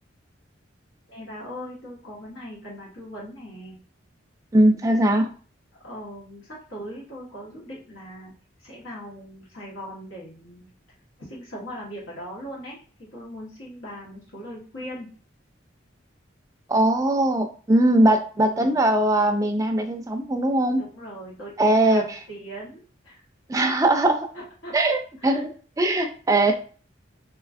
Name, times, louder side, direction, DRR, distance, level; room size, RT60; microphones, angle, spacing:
voice 1, 1.1-3.8 5.8-8.3 8.6-10.6 11.2-15.1 17.9-18.7 20.8-23.2 24.3-24.7 25.2-25.4, equal, 90° left, -5 dB, 1.2 m, -40 dB
voice 2, 4.5-5.3 16.7-20.8 21.6-22.2 23.5-24.3 24.7-25.5 25.8-26.5, right 1 dB, 15° right, 5 dB, 0.3 m, -20 dB
3.0 x 2.4 x 2.4 m, 0.40 s
head